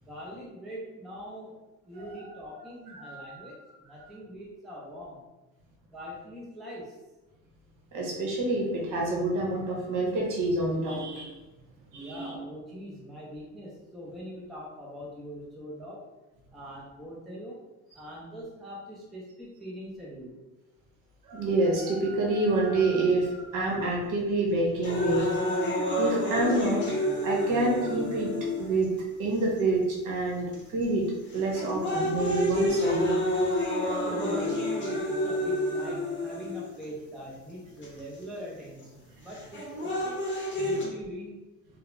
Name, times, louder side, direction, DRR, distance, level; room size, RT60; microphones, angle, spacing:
voice 1, 0.0-5.3 5.9-7.0 11.9-16.1 16.5-17.6 17.9-20.4 34.1-40.2 40.6-41.4, equal, ahead, -5 dB, 0.3 m, -42 dB
voice 2, 2.9-3.5 7.9-11.3 11.9-12.3 21.3-25.3 26.0-26.8 27.2-28.3 28.6-28.9 29.2-31.1 31.3-33.1, right 2 dB, 65° right, -2 dB, 0.8 m, -27 dB
sound 1, 24.8-28.8 29.6-29.7 30.5-30.8 31.3-36.8 37.8-37.9 39.3-40.8, left 1 dB, 35° left, 0.7 m, -29 dB
2.3 x 2.0 x 3.0 m, 1.1 s
cardioid pair, 140°, 34 cm